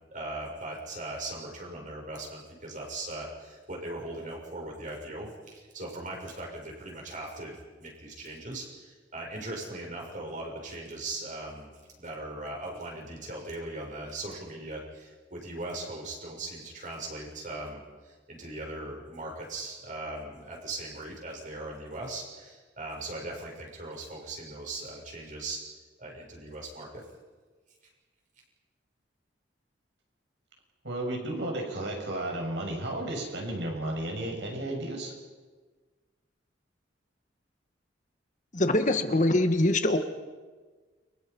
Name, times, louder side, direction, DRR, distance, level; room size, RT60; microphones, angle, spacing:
voice 1, 0.1-11.7 12.0-25.6 26.0-27.0, right 2 dB, 45° right, 0 dB, 7.3 m, -39 dB
voice 2, 30.8-35.1, right 1 dB, 70° right, 1 dB, 6.6 m, -33 dB
voice 3, 38.5-40.0, left 1 dB, 40° left, 8 dB, 1.8 m, -23 dB
29.5 x 25.0 x 5.6 m, 1.4 s
head